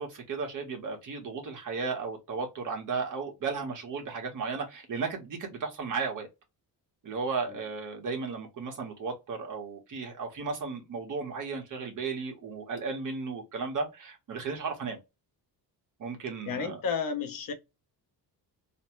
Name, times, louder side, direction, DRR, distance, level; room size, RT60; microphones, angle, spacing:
voice 1, 0.0-6.3 7.0-15.0 16.0-16.8, right 4 dB, 50° right, 1.3 m, -35 dB
voice 2, 16.5-17.5, left 6 dB, 55° left, 0.9 m, -32 dB
3.2 x 2.1 x 3.0 m
cardioid pair, 165°, 41 cm